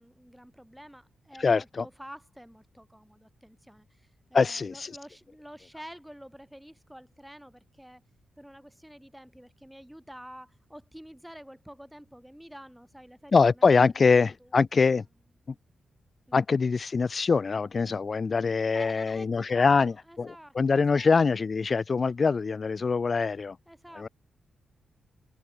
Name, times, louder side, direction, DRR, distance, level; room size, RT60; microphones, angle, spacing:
voice 1, 0.0-8.0 8.4-14.9 16.3-16.4 18.7-21.1 23.7-24.1, equal, ahead, 3.9 m, -49 dB
voice 2, 1.4-1.8 4.3-4.9 13.3-15.0 15.5-15.6 16.3-19.9 20.2-20.3 20.5-23.6 24.0-24.1, left 4 dB, 35° left, 0.9 m, -23 dB
wide cardioid pair, 135°, 0 cm